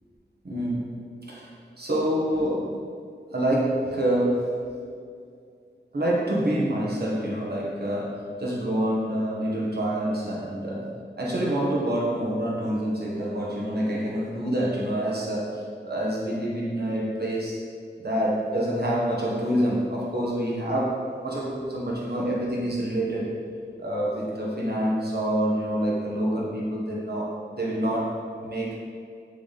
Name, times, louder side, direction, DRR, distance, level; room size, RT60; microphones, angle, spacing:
voice 1, 0.4-1.5 1.8-2.8 3.3-4.7 5.9-10.9 11.2-17.6 18.0-23.4 23.8-28.7, right 1 dB, 55° right, -4 dB, 1.5 m, -27 dB
6.9 x 3.7 x 4.2 m, 2.3 s
wide cardioid pair, 65°, 19 cm